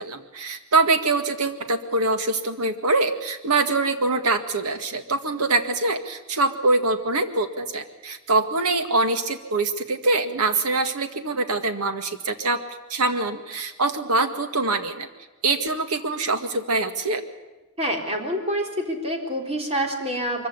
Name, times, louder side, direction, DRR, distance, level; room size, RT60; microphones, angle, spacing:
voice 1, 0.0-12.6 12.9-15.1 15.4-17.2, right 3 dB, 85° right, 8 dB, 1.9 m, -24 dB
voice 2, 17.8-20.5, equal, 30° right, 2 dB, 3.8 m, -27 dB
23.5 x 15.5 x 9.8 m, 1.1 s
head